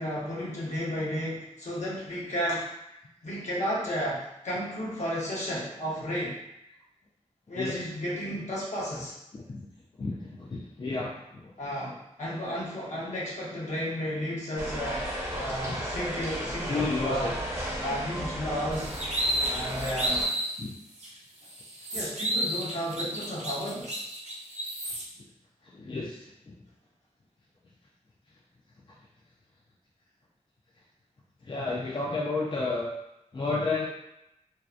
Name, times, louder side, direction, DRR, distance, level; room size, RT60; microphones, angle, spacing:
voice 1, 0.0-2.7 3.2-6.4 7.5-9.2 11.6-17.3 17.8-18.9 19.4-20.2 21.9-24.0, equal, 70° left, -6 dB, 0.8 m, -33 dB
voice 2, 7.5-7.8 8.3-8.4 9.3-9.7 10.0-11.5 15.7-15.8 16.7-17.3 20.6-20.7 25.6-26.5 28.9-29.0 31.4-32.9 33.3-33.9, left 3 dB, 40° left, -5 dB, 0.4 m, -32 dB
sound 1, 14.6-20.3, equal, 20° right, 0.6 m, -34 dB
sound 2, 18.7-20.5 21.0-21.1 21.5-25.0, right 1 dB, 60° right, 0.6 m, -31 dB
2.7 x 2.0 x 2.3 m, 0.83 s
wide cardioid pair, 85°, 13 cm